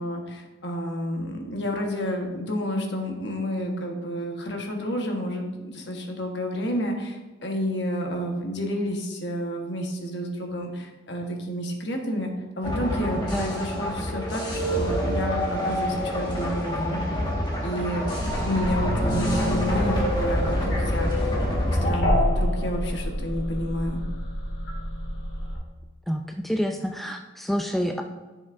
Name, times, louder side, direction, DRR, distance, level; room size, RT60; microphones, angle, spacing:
voice 1, 0.0-17.0 17.6-18.1 18.4-21.3 21.8-24.0, equal, 60° left, 2 dB, 1.3 m, -30 dB
sound 1, 12.6-21.9, equal, 20° left, 1.5 m, -27 dB
voice 2, 13.2-13.6 26.1-28.0, equal, ahead, 3 dB, 0.3 m, -28 dB
sound 2, 18.2-25.6, equal, 80° left, 2.1 m, -28 dB
11.0 x 6.3 x 2.6 m, 1.2 s
head